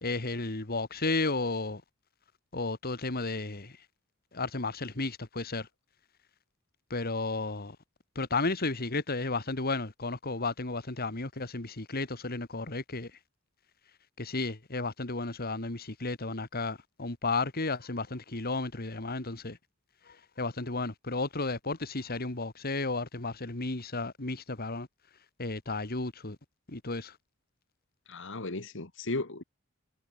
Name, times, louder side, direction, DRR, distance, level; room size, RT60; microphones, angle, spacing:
voice 1, 0.0-1.8 2.5-3.8 4.3-5.7 6.9-7.8 8.2-13.1 14.2-19.6 20.1-24.9 25.4-26.4 26.7-27.2, left 3 dB, 45° left, 2.2 m, -33 dB
voice 2, 28.1-29.4, left 2 dB, 60° left, 2.0 m, -35 dB
head